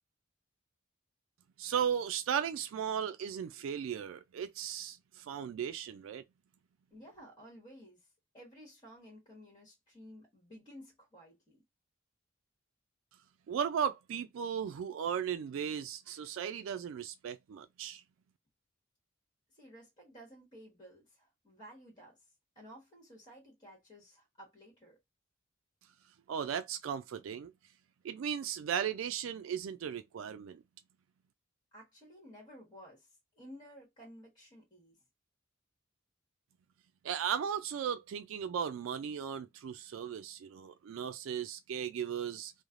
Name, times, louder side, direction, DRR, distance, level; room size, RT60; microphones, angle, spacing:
voice 1, 1.6-6.2 13.5-18.0 26.3-27.5 28.0-30.6 37.0-42.5, right 8 dB, 85° right, 0.3 m, -36 dB
voice 2, 6.9-8.1 8.3-11.6 19.5-22.3 22.5-25.0 31.7-35.0, equal, 20° left, 1.2 m, -54 dB
3.1 x 2.0 x 2.4 m
head